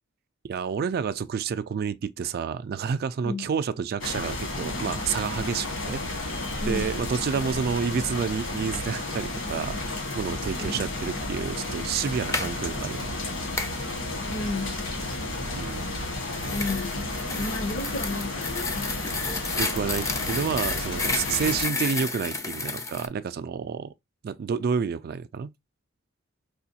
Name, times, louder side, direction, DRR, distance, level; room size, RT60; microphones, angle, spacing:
voice 1, 0.4-6.4 6.7-9.8 10.2-13.1 15.6-16.1 19.6-23.9 24.2-25.5, right 6 dB, 50° right, 0.3 m, -29 dB
sound 1, 4.0-21.6, left 2 dB, 70° left, 1.5 m, -32 dB
voice 2, 6.6-7.0 10.5-10.8 14.3-15.2 15.8-15.9 16.5-19.2, left 2 dB, 55° left, 0.7 m, -34 dB
sound 2, 12.1-12.5 13.6-13.8 15.9-23.1, left 3 dB, 15° left, 0.4 m, -31 dB
4.8 x 2.2 x 2.7 m
head